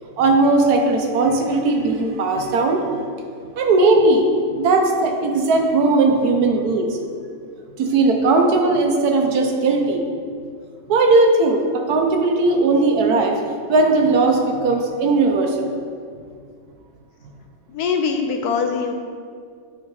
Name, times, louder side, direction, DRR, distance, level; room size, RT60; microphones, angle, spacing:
voice 1, 0.2-2.9 3.6-4.3 4.5-7.0 7.8-10.0 10.9-13.3 13.7-15.8, right 3 dB, 65° right, 3 dB, 1.1 m, -18 dB
voice 2, 17.7-18.9, left 5 dB, 70° left, 4 dB, 1.0 m, -22 dB
9.8 x 3.7 x 4.7 m, 2.2 s
omnidirectional pair, 1.9 m